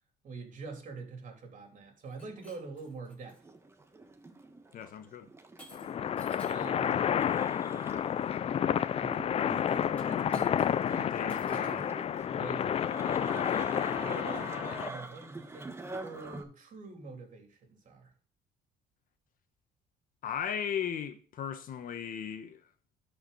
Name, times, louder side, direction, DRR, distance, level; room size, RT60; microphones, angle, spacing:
voice 1, 0.2-3.4 6.5-7.0 8.9-10.5 10.9-12.0 12.3-12.8 14.0-18.1, right 4 dB, 50° right, 3.3 m, -45 dB
Shatter, 2.0-3.4 4.1-4.4 5.6-6.7 9.9-10.9 11.3-11.9, left 1 dB, 10° left, 4.5 m, -54 dB
sound 1, 3.2-16.4, right 2 dB, 15° right, 1.2 m, -46 dB
voice 2, 4.7-5.3 11.1-11.9 12.4-12.7 20.2-22.7, left 8 dB, 55° left, 1.1 m, -37 dB
sound 2, 5.7-14.9, left 9 dB, 35° left, 0.4 m, -30 dB
12.5 x 5.1 x 4.0 m
cardioid pair, 110°, 17 cm